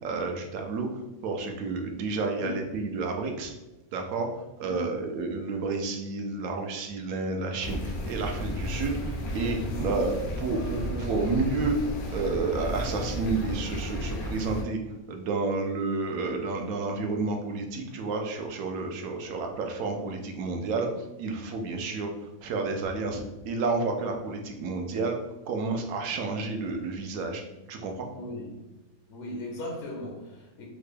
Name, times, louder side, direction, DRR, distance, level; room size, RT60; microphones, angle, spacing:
voice 1, 0.0-3.5 3.9-4.3 4.6-11.8 12.1-14.8 15.1-22.1 22.4-23.2 23.5-25.2 25.5-27.4 27.7-28.1, right 3 dB, 75° right, 1.0 m, -30 dB
voice 2, 2.4-2.7 4.6-4.9 9.7-10.0 28.1-28.6 29.1-30.7, left 1 dB, 65° left, 0.8 m, -37 dB
sound 1, 7.6-14.6, equal, 80° left, 1.1 m, -33 dB
3.7 x 2.2 x 3.2 m
omnidirectional pair, 1.5 m